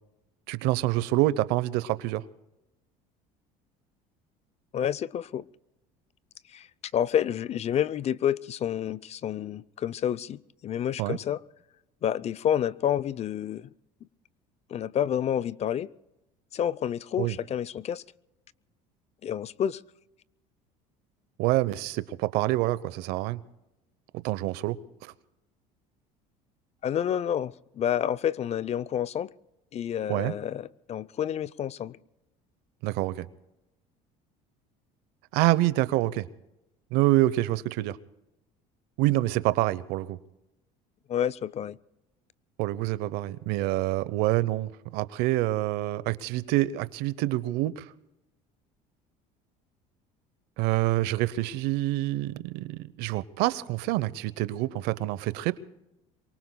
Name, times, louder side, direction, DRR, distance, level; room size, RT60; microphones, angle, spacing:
voice 1, 0.5-2.2 11.0-11.2 17.2-17.4 21.4-23.4 24.2-25.1 30.1-30.3 32.8-33.3 35.3-36.3 36.9-38.0 39.0-40.2 42.6-47.9 50.6-55.6, right 16 dB, 75° right, 0.9 m, -26 dB
voice 2, 4.7-5.5 6.5-6.7 6.9-11.4 12.0-13.7 14.7-15.9 16.5-18.0 19.2-19.8 26.8-29.3 29.7-32.0 41.1-41.8, left 9 dB, 40° left, 0.5 m, -29 dB
27.0 x 24.0 x 2.3 m
supercardioid pair, 100°, 17 cm